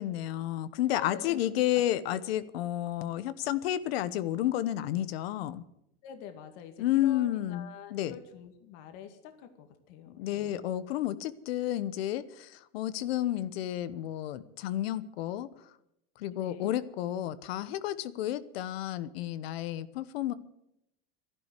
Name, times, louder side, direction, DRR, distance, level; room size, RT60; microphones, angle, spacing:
voice 1, 0.0-5.6 6.8-8.2 10.1-15.5 16.2-20.3, left 13 dB, 85° left, 15 dB, 1.1 m, -31 dB
voice 2, 0.9-1.4 1.7-1.8 6.0-10.7 16.3-16.7, left 8 dB, 60° left, 7 dB, 2.2 m, -46 dB
12.0 x 11.0 x 9.7 m, 0.81 s
supercardioid pair, 140°, 30 cm